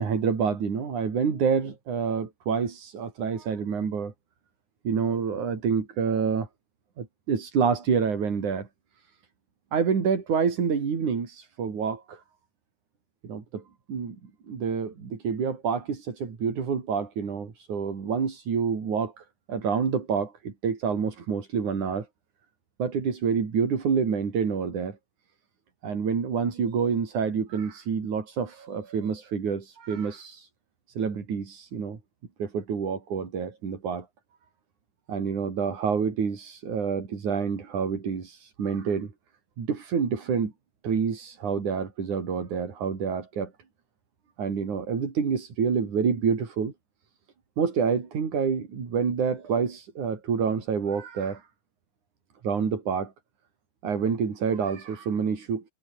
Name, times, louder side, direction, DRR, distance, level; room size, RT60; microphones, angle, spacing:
voice 1, 0.0-4.1 4.8-6.5 7.0-8.7 9.7-12.2 13.2-13.6 13.9-14.2 14.5-22.1 22.8-25.0 25.8-30.5 30.9-32.0 32.4-34.1 35.1-39.1 39.6-40.5 40.8-43.5 44.4-46.7 47.6-51.5 52.4-53.1 53.8-55.7, right 6 dB, 80° right, 5.2 m, -27 dB
omnidirectional pair, 3.4 m